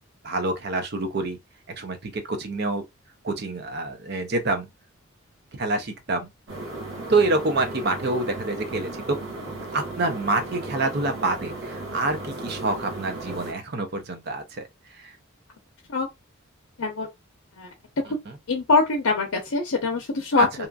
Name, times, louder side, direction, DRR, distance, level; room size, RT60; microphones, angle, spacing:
voice 1, 0.2-1.4 1.8-2.8 3.2-4.7 5.5-6.3 7.1-9.2 9.7-14.6 20.4-20.5, right 2 dB, 50° right, 0.6 m, -26 dB
sound 1, 6.5-13.5, right 2 dB, 70° right, 1.2 m, -35 dB
voice 2, 18.5-20.7, left 3 dB, 85° left, 0.6 m, -23 dB
2.8 x 2.4 x 2.2 m
head